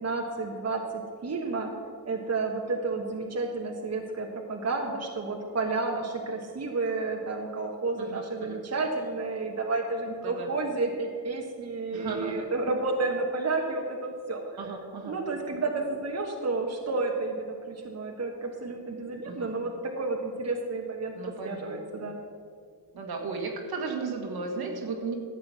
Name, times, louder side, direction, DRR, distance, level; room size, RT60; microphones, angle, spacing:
voice 1, 0.0-1.7 2.1-14.6 15.0-21.1 21.4-22.2, right 3 dB, 40° right, 1 dB, 1.3 m, -31 dB
voice 2, 8.0-8.6 10.2-10.5 11.9-12.5 14.6-15.2 19.3-19.5 21.2-22.1 22.9-25.1, right 4 dB, 65° right, 2 dB, 1.8 m, -35 dB
12.0 x 7.5 x 6.1 m, 2.2 s
cardioid pair, 70°, 40 cm